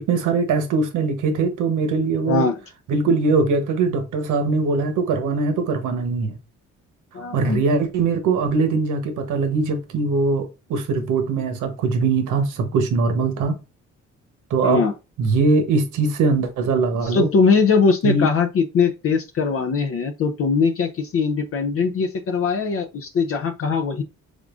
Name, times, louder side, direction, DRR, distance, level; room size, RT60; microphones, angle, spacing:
voice 1, 0.0-2.5 2.9-6.4 7.3-13.6 14.5-14.8 15.2-17.3 18.0-18.3, right 4 dB, 80° right, 0.9 m, -21 dB
voice 2, 2.3-2.6 7.1-7.6 14.6-14.9 17.0-24.0, left 5 dB, 50° left, 0.5 m, -21 dB
3.6 x 3.6 x 2.4 m
cardioid pair, 90°, 30 cm